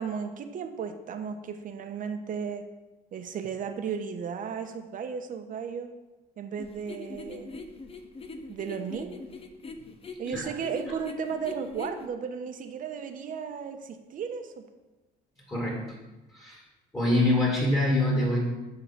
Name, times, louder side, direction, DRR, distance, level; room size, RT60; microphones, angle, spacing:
voice 1, 0.0-2.6 3.1-5.9 6.4-7.5 8.5-9.2 10.2-14.5, right 6 dB, 55° right, 6 dB, 1.0 m, -34 dB
sound 1, 6.6-12.1, left 3 dB, 35° left, 0.9 m, -42 dB
voice 2, 16.9-18.4, left 1 dB, 20° left, -4 dB, 2.6 m, -24 dB
10.5 x 4.0 x 7.3 m, 1.1 s
cardioid pair, 110°, 17 cm